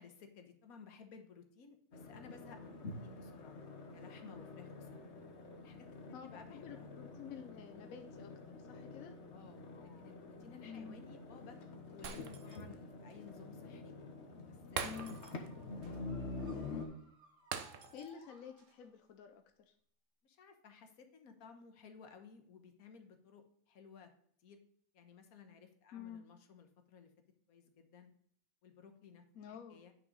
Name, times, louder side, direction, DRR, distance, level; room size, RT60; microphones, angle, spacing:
voice 1, 0.0-3.6 3.9-5.1 5.6-6.9 9.3-13.9 14.5-16.0 20.2-24.1 24.4-24.6 24.9-27.1 27.5-28.1 28.6-29.9, left 6 dB, 90° left, 7 dB, 1.5 m, -57 dB
sound 1, 1.9-16.9, left 3 dB, 55° left, 1.3 m, -48 dB
voice 2, 6.1-9.1 10.6-11.0 14.8-15.2 17.9-19.7 25.9-26.2 29.3-29.8, left 7 dB, 75° left, 6 dB, 1.1 m, -50 dB
Shatter, 12.0-12.7 13.1-13.2 14.8-15.5 15.8-16.0 17.5-18.2 18.6-18.7, right 7 dB, 65° right, 1.1 m, -43 dB
sound 2, 14.9-19.1, equal, 5° left, 2.2 m, -62 dB
9.1 x 5.9 x 4.0 m, 0.63 s
omnidirectional pair, 1.5 m